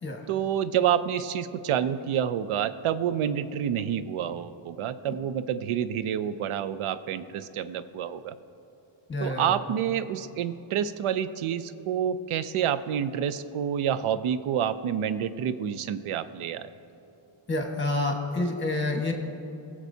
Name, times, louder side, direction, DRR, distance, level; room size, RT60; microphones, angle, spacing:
voice 1, 0.3-8.3 9.2-16.7, right 9 dB, 85° right, 13 dB, 0.5 m, -28 dB
voice 2, 9.1-9.6 17.5-19.1, left 2 dB, 20° left, 2 dB, 1.4 m, -28 dB
21.5 x 7.3 x 2.7 m, 2.9 s
wide cardioid pair, 155°, 49 cm